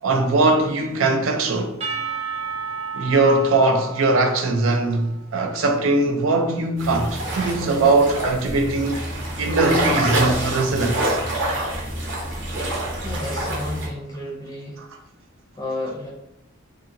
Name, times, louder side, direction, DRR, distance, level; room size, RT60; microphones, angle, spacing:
voice 1, 0.0-1.8 2.9-9.0 9.4-11.2 14.8-14.9, right 2 dB, 85° right, 0.5 m, -20 dB
Percussion / Church bell, 1.8-5.7, right 5 dB, 30° right, 0.5 m, -32 dB
sound 1, 6.8-13.9, right 1 dB, 60° right, 0.8 m, -26 dB
voice 2, 13.0-14.9 15.6-16.1, left 1 dB, 20° left, 0.5 m, -31 dB
2.7 x 2.6 x 2.6 m
head